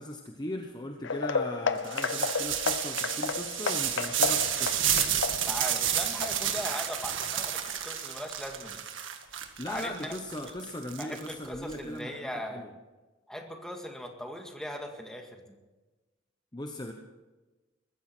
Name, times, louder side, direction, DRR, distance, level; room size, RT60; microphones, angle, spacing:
voice 1, 0.0-5.0 9.6-12.7 16.5-16.9, left 1 dB, 20° left, 3 dB, 1.0 m, -39 dB
sound 1, 1.0-7.7 8.0-8.3 8.7-8.8 9.2-9.3, left 5 dB, 70° left, 0.8 m, -33 dB
sound 2, 1.8-11.7, right 10 dB, 80° right, 1.7 m, -31 dB
voice 2, 5.5-8.8 9.7-10.1 11.0-12.7 13.3-15.6, equal, 5° left, 3 dB, 2.0 m, -39 dB
21.5 x 15.0 x 4.5 m, 1.2 s
head